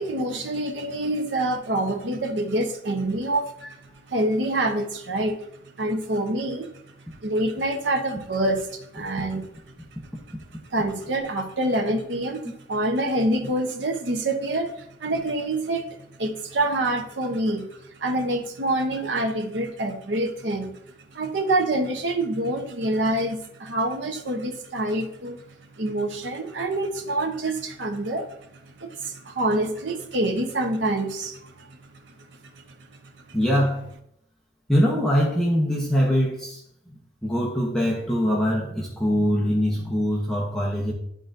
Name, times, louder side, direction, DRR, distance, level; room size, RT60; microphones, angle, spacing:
voice 1, 0.0-3.5 4.1-5.4 5.8-6.8 7.2-9.5 10.7-17.7 18.0-20.8 21.1-25.4 25.8-28.3 28.8-31.8 33.3-33.4, right 1 dB, 85° right, 4 dB, 0.8 m, -26 dB
voice 2, 33.3-33.9 34.7-36.6 37.2-40.9, equal, 5° left, -4 dB, 0.9 m, -23 dB
11.0 x 3.8 x 2.6 m, 0.74 s
head